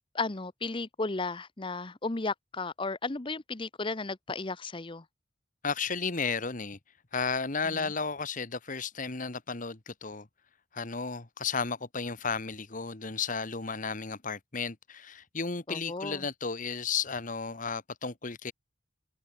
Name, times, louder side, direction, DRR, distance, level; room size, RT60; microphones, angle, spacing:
voice 1, 0.0-5.0 7.6-7.9 15.7-16.3, left 3 dB, 25° left, 0.8 m, -34 dB
voice 2, 5.6-6.8 7.1-10.3 10.7-18.5, left 5 dB, 40° left, 1.4 m, -33 dB
head